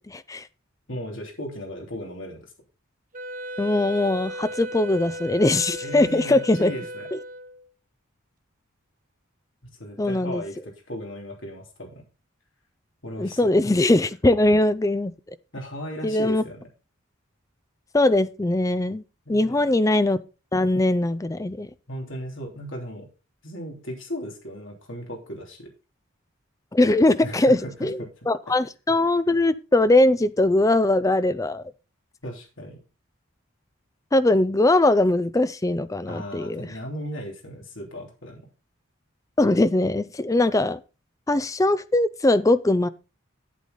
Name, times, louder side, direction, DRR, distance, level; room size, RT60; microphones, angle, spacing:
voice 1, 0.9-2.5 5.8-7.1 9.8-12.0 13.0-13.6 15.5-16.6 19.3-19.6 21.9-23.1 23.4-25.7 27.2-28.1 32.2-32.8 36.1-38.4, equal, 60° left, 3.2 m, -36 dB
Wind instrument woodwind instrument, 3.1-7.7, right 1 dB, 40° right, 0.9 m, -36 dB
voice 2, 3.6-6.7 7.1-7.2 10.0-10.4 13.2-15.1 16.0-16.4 17.9-19.0 19.3-20.2 20.5-21.7 26.7-31.6 34.1-36.7 39.4-40.8 41.3-42.9, left 2 dB, 15° left, 0.4 m, -21 dB
9.1 x 8.4 x 3.9 m
head